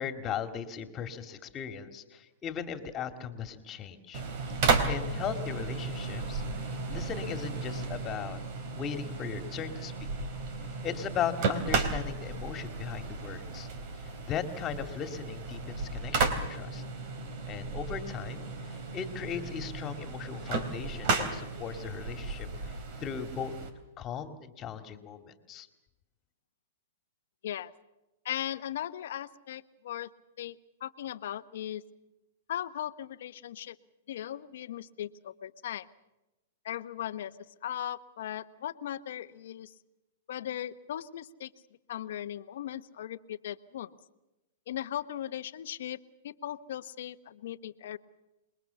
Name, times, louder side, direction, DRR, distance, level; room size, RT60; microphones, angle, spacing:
voice 1, 0.0-4.2 4.9-6.4 6.9-8.4 8.7-9.9 10.8-13.7 14.0-16.8 17.5-23.5 24.0-25.7, left 8 dB, 30° left, 8 dB, 2.4 m, -38 dB
sound 1, 4.1-23.7, right 4 dB, 50° right, 3.6 m, -34 dB
voice 2, 28.2-30.1 30.4-31.8 32.5-33.8 34.1-35.9 36.6-37.3 37.6-39.7 40.3-41.5 41.9-43.9 44.7-46.0 46.2-48.0, left 11 dB, 70° left, 12 dB, 1.1 m, -38 dB
27.5 x 21.5 x 7.1 m, 0.98 s
hypercardioid pair, 125°, 0 cm